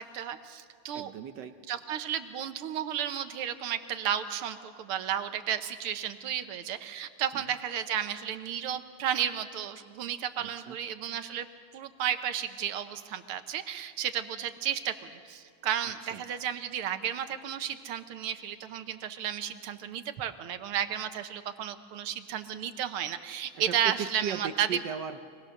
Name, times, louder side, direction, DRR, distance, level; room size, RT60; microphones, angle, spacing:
voice 1, 0.0-1.1 1.7-11.5 11.7-24.7, right 9 dB, 85° right, 10 dB, 1.8 m, -33 dB
voice 2, 0.9-1.6 7.3-7.4 10.4-10.8 15.8-16.3 23.5-25.2, right 7 dB, 65° right, 9 dB, 1.2 m, -38 dB
24.5 x 19.5 x 6.5 m, 2.2 s
omnidirectional pair, 2.4 m